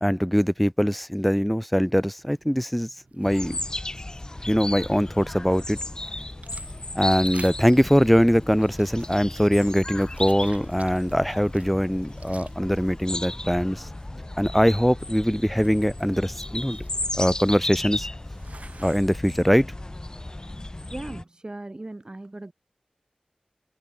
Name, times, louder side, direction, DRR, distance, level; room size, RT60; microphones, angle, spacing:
voice 1, 0.0-2.9 3.2-3.6 4.5-5.8 7.0-13.9 14.4-16.8 17.2-18.1 18.8-19.7, equal, ahead, 0.8 m, -22 dB
sound 1, 2.2-19.1, right 3 dB, 60° right, 5.2 m, -52 dB
sound 2, 3.3-21.2, left 1 dB, 30° left, 4.7 m, -35 dB
voice 2, 20.9-22.5, right 2 dB, 35° right, 3.2 m, -38 dB
wide cardioid pair, 55°, 3 cm